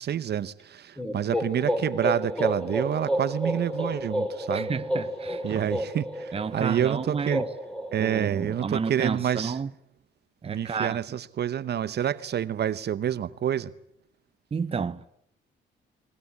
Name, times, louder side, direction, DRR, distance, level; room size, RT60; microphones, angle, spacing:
voice 1, 0.0-4.7 5.4-7.4 7.9-9.6 10.4-13.7, right 10 dB, 55° right, 0.9 m, -28 dB
sound 1, 1.0-8.7, equal, 5° left, 3.7 m, -31 dB
voice 2, 4.5-5.7 6.3-7.5 8.0-9.7 10.4-11.0 14.5-15.1, right 5 dB, 30° right, 0.8 m, -31 dB
20.5 x 20.0 x 9.5 m
cardioid pair, 90°, 20 cm